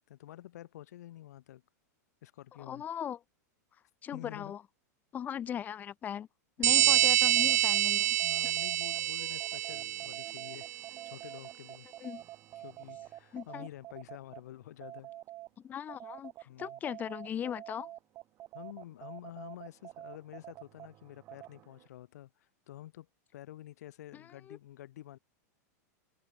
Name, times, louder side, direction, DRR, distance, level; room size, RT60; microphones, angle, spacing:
voice 1, 0.0-1.6 2.2-2.8 4.1-4.5 6.6-7.2 8.2-10.8 11.0-11.9 12.6-15.1 16.4-16.8 18.5-23.1 23.3-25.2, left 13 dB, 70° left, 6.8 m, -49 dB
voice 2, 2.6-3.2 4.0-4.6 5.1-6.3 6.6-8.2 8.4-8.5 12.0-12.2 13.3-13.7 15.6-16.3 16.6-17.9 24.1-24.6, left 9 dB, 20° left, 2.8 m, -38 dB
sound 1, 6.6-15.5 15.9-21.9, right 14 dB, 25° right, 4.6 m, -48 dB
sound 2, 6.6-10.9, right 13 dB, 70° right, 1.2 m, -27 dB
supercardioid pair, 165°, 9 cm